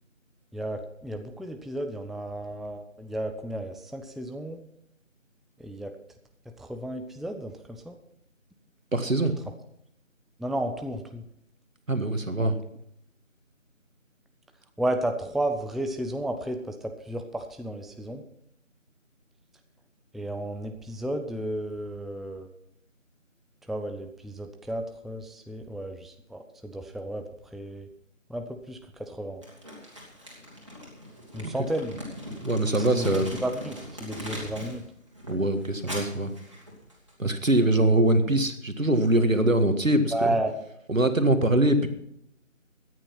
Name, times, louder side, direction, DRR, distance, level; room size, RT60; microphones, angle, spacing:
voice 1, 0.5-4.6 5.6-5.9 6.6-8.0 10.4-11.2 12.4-12.5 14.8-18.2 20.1-22.5 23.7-27.9 28.3-29.4 31.3-31.9 32.8-33.1 33.4-34.8 40.1-40.6, right 1 dB, ahead, 6 dB, 0.5 m, -33 dB
voice 2, 8.9-9.3 11.9-12.6 32.4-33.3 35.3-36.3 37.2-40.1 40.9-41.9, right 1 dB, 75° right, 8 dB, 1.9 m, -23 dB
Crumpling crinkling, 29.4-34.8 35.1-37.1, equal, 20° right, 2.6 m, -40 dB
14.0 x 9.9 x 5.8 m, 0.74 s
figure-of-eight pair, 170°, 40 cm